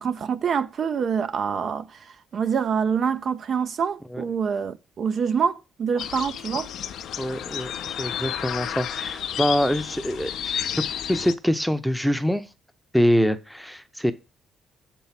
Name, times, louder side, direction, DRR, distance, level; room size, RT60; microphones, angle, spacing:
voice 1, 0.0-6.7, right 6 dB, 55° right, 0.5 m, -26 dB
sound 1, 6.0-11.3, left 9 dB, 75° left, 0.5 m, -31 dB
voice 2, 7.2-12.4 12.9-14.1, equal, ahead, 0.7 m, -25 dB
6.5 x 4.6 x 5.7 m
cardioid pair, 90°, 0 cm